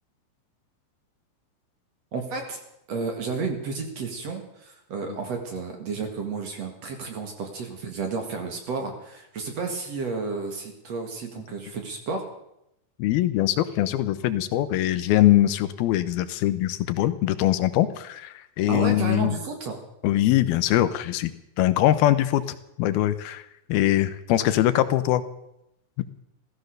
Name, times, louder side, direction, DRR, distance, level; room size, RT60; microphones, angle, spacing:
voice 1, 2.1-2.6 2.9-12.2 18.7-19.8, right 4 dB, 50° right, 4 dB, 2.7 m, -32 dB
voice 2, 13.0-19.4 20.0-21.3 21.6-22.4 22.8-23.4 23.7-25.2, left 14 dB, 80° left, 12 dB, 2.7 m, -22 dB
15.0 x 15.0 x 6.6 m, 0.83 s
omnidirectional pair, 4.4 m